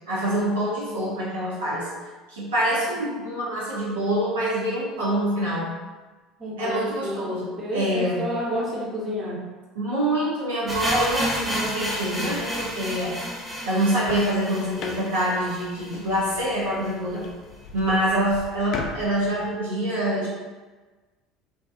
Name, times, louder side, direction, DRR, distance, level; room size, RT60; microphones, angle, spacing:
voice 1, 0.1-1.9 2.3-5.7 6.6-8.2 9.8-13.2 13.7-17.3 17.7-20.3, right 1 dB, 80° right, -7 dB, 0.6 m, -25 dB
voice 2, 6.4-9.4, equal, 30° right, -5 dB, 0.9 m, -30 dB
sound 1, 10.7-16.6 16.9-17.0 17.2-17.3 17.9-18.0, equal, 5° left, 0.7 m, -31 dB
sound 2, 13.8-19.5, left 4 dB, 55° left, 0.3 m, -39 dB
2.6 x 2.3 x 2.3 m, 1.3 s
hypercardioid pair, 70°, 0 cm